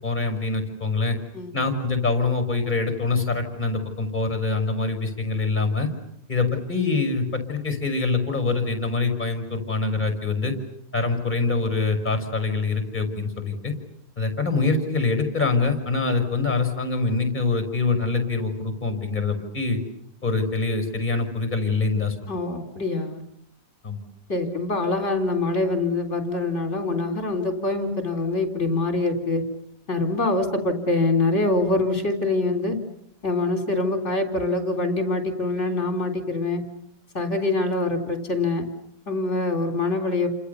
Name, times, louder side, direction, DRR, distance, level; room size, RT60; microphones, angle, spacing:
voice 1, 0.0-1.2 1.5-5.9 6.3-10.5 10.9-13.7 14.2-19.8 20.2-22.3 23.8-24.0, left 3 dB, 25° left, 7 dB, 6.0 m, -24 dB
voice 2, 22.3-23.2 24.3-29.4 29.9-32.8 33.2-36.6 37.1-38.7 39.1-40.3, left 2 dB, 40° left, 6 dB, 4.2 m, -24 dB
30.0 x 27.5 x 7.0 m, 0.76 s
omnidirectional pair, 1.8 m